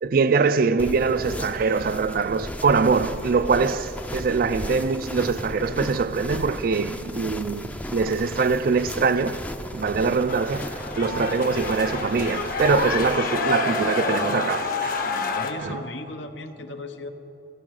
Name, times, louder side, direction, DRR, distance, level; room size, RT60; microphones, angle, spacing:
voice 1, 0.0-9.4 9.7-15.0 15.6-15.8, right 4 dB, 50° right, 0.4 m, -23 dB
sound 1, 0.8-13.2, left 1 dB, 10° left, 0.5 m, -35 dB
sound 2, 10.3-15.5, left 4 dB, 50° left, 1.0 m, -28 dB
voice 2, 15.0-17.1, left 2 dB, 75° left, 0.9 m, -36 dB
14.0 x 12.5 x 6.4 m
head